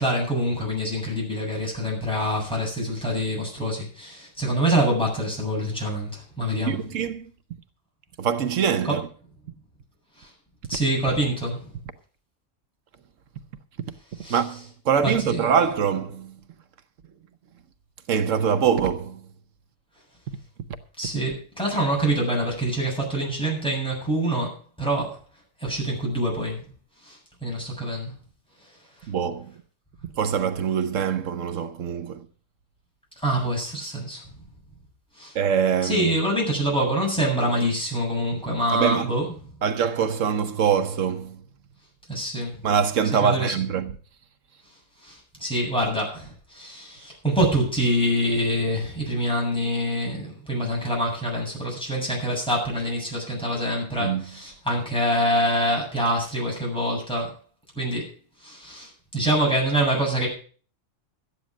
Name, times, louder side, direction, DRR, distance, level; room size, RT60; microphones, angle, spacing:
voice 1, 0.0-6.8 8.8-9.0 10.2-10.3 10.7-11.7 14.2-14.4 15.0-15.4 21.0-25.2 25.6-26.7 27.0-28.1 28.6-28.7 33.2-34.2 35.2-35.3 35.8-39.3 42.1-42.6 43.2-43.5 45.0-57.3 57.8-58.1 58.4-60.3, right 1 dB, 5° left, 7.5 m, -25 dB
voice 2, 6.7-7.3 8.2-9.0 14.3-16.3 18.1-19.2 29.1-29.5 30.2-32.3 35.3-36.1 38.7-39.1 39.6-41.4 42.6-43.9 54.0-54.2, right 7 dB, 80° right, 1.2 m, -24 dB
13.5 x 10.0 x 6.1 m
omnidirectional pair, 1.3 m